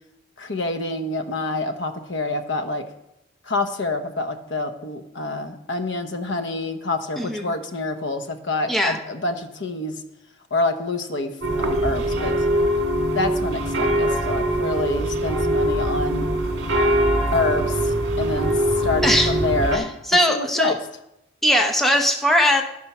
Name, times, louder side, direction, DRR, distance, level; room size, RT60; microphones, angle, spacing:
voice 1, 0.4-2.9 3.5-9.9 10.5-11.3 11.6-12.3 13.1-16.3 17.3-19.9 20.3-20.8, left 2 dB, 70° left, 7 dB, 1.0 m, -27 dB
voice 2, 8.7-9.0 19.0-19.3 19.7-19.8 20.1-20.7 21.4-22.6, equal, ahead, 3 dB, 0.9 m, -19 dB
sound 1, 11.4-19.8, right 1 dB, 60° right, 2.1 m, -22 dB
12.0 x 8.6 x 6.0 m, 0.85 s
head